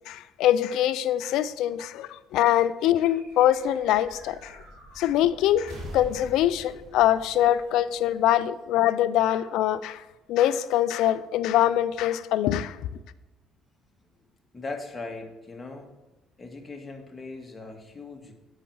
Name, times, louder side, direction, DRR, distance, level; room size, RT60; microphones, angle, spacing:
voice 1, 0.1-4.6 5.0-10.0 10.3-12.8, left 12 dB, 80° left, 0.4 m, -23 dB
sound 1, 2.9-8.6, equal, 70° right, 3.6 m, -45 dB
voice 2, 14.5-15.9 16.4-18.3, left 3 dB, 25° left, 1.8 m, -39 dB
8.5 x 5.6 x 6.3 m
supercardioid pair, 70°, 0 cm